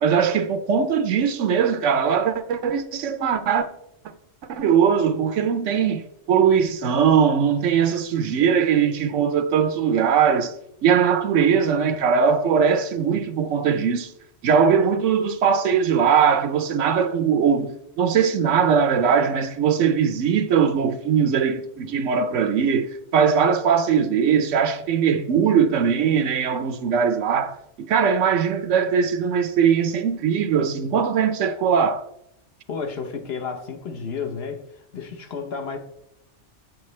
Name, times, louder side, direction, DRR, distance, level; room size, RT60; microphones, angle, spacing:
voice 1, 0.0-3.7 4.5-6.0 6.3-10.5 10.8-14.1 14.4-32.0, right 7 dB, 85° right, 1.0 m, -20 dB
voice 2, 32.7-35.8, left 5 dB, 60° left, 1.1 m, -32 dB
7.9 x 7.6 x 3.1 m
omnidirectional pair, 1.2 m